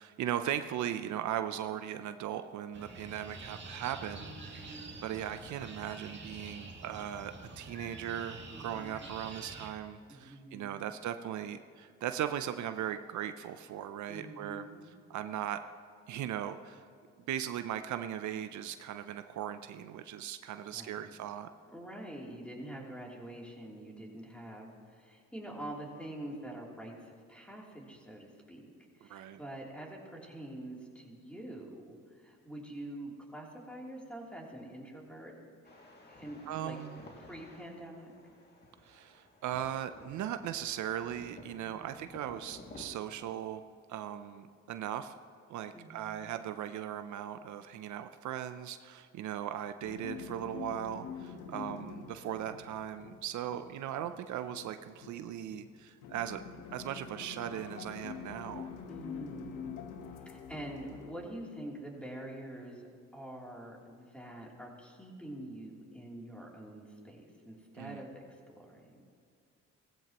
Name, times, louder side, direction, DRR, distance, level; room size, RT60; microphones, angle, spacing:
voice 1, 0.0-4.7 5.0-14.6 15.1-15.6 16.1-16.8 17.3-21.5 29.1-29.4 36.5-37.0 38.8-43.6 43.9-45.1 45.5-56.4 56.7-58.7 67.8-68.0, right 10 dB, 70° right, 10 dB, 0.6 m, -38 dB
sound 1, 2.7-9.7, right 2 dB, 40° right, 2.3 m, -47 dB
voice 2, 4.2-5.2 8.5-9.2 10.1-10.9 14.1-14.9 20.7-21.1 21.7-35.3 36.1-36.8 37.2-38.1 41.6-42.0 45.7-46.3 51.3-51.9 58.8-59.8 60.1-69.0, right 1 dB, 5° left, -3 dB, 3.1 m, -46 dB
sound 2, 35.6-42.9, left 2 dB, 35° left, 2.4 m, -54 dB
sound 3, 49.8-61.1, left 7 dB, 85° left, 1.0 m, -46 dB
17.5 x 15.0 x 3.0 m, 2.3 s
cardioid pair, 90°, 30 cm